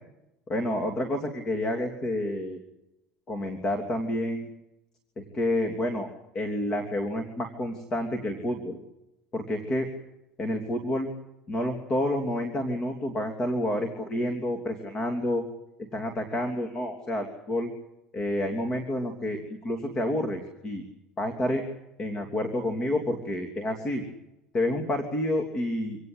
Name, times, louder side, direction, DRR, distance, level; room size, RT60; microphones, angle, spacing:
voice 1, 0.5-2.6 3.3-4.5 5.2-6.1 6.3-8.8 9.3-9.9 10.4-11.1 11.5-15.4 15.9-17.7 18.1-20.8 21.2-21.6 22.0-24.0 24.5-26.0, left 1 dB, 30° left, 5 dB, 3.1 m, -29 dB
26.5 x 18.0 x 8.1 m, 0.91 s
cardioid pair, 135°, 2 cm